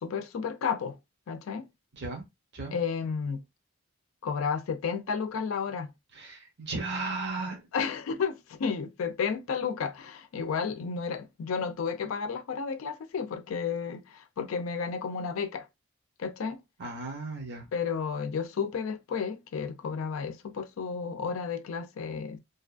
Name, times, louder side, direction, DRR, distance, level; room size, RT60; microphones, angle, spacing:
voice 1, 0.0-1.0 1.3-1.7 2.7-3.4 4.2-5.9 7.7-15.7 16.2-16.6 17.7-22.4, left 6 dB, 85° left, 0.4 m, -32 dB
voice 2, 6.1-7.7 16.8-17.7, right 3 dB, 60° right, 0.9 m, -35 dB
2.7 x 2.3 x 2.4 m
head